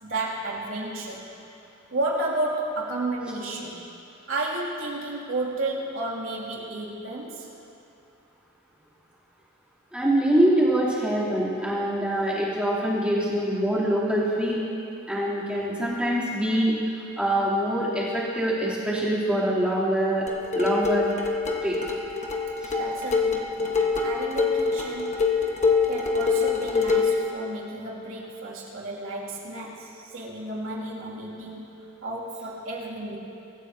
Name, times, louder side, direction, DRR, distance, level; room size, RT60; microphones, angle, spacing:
voice 1, 0.0-1.3 1.9-3.9 4.3-7.5 22.8-25.2 25.9-31.7 32.0-33.2, right 2 dB, 80° right, -4 dB, 2.6 m, -32 dB
voice 2, 9.9-14.7 15.1-16.7 17.2-20.2 20.5-21.1 21.6-21.8 22.6-22.7, right 1 dB, 5° right, -8 dB, 3.2 m, -24 dB
sound 1, 20.3-27.2, left 5 dB, 35° left, 1.4 m, -25 dB
24.0 x 14.0 x 2.8 m, 2.8 s
head